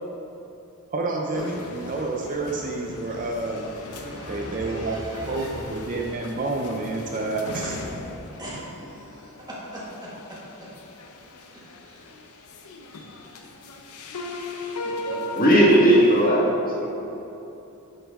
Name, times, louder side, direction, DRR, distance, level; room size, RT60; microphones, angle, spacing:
voice 1, 0.9-3.7 4.3-7.8, right 2 dB, 40° right, 0 dB, 0.6 m, -29 dB
sound 1, 1.3-16.3, left 2 dB, 90° left, 0.8 m, -38 dB
voice 2, 3.8-5.6 8.4-10.7 11.9-12.0 14.8-15.4, right 1 dB, 20° right, -7 dB, 2.0 m, -38 dB
voice 3, 15.3-16.5 16.8-16.9, right 1 dB, 40° left, -5 dB, 1.8 m, -16 dB
10.0 x 6.2 x 3.7 m, 2.9 s
head